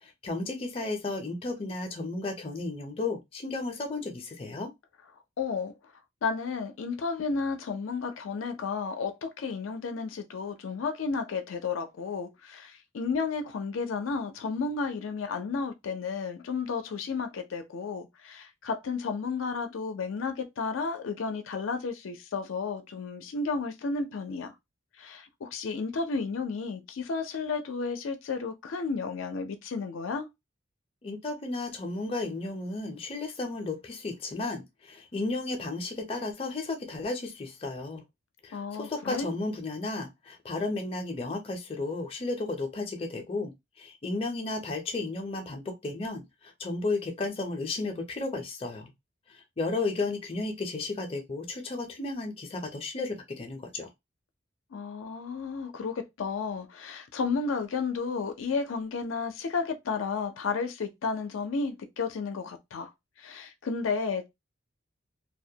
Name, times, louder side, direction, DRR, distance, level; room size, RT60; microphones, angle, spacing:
voice 1, 0.0-4.7 31.0-38.0 38.4-43.5 43.8-48.9 49.3-53.9, left 3 dB, 30° left, 0.5 m, -33 dB
voice 2, 5.4-5.7 6.2-24.5 25.0-30.3 38.5-39.3 54.7-62.9 63.2-64.3, left 4 dB, 90° left, 0.4 m, -32 dB
2.2 x 2.1 x 2.7 m
head